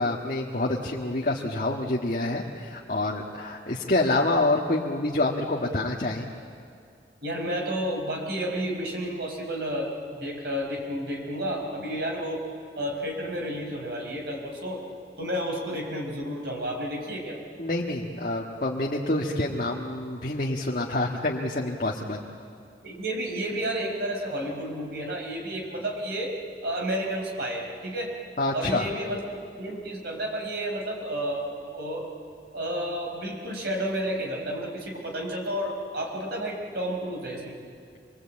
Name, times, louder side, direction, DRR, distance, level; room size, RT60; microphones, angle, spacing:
voice 1, 0.0-6.3 17.6-22.2 28.4-28.9, left 2 dB, 50° left, -2 dB, 1.6 m, -27 dB
voice 2, 7.2-12.4 12.7-14.8 15.2-17.4 22.8-26.3 26.6-28.1 28.5-29.2 29.6-32.0 32.5-37.6, right 1 dB, 65° right, 1 dB, 4.8 m, -31 dB
26.0 x 22.0 x 8.6 m, 2.4 s
head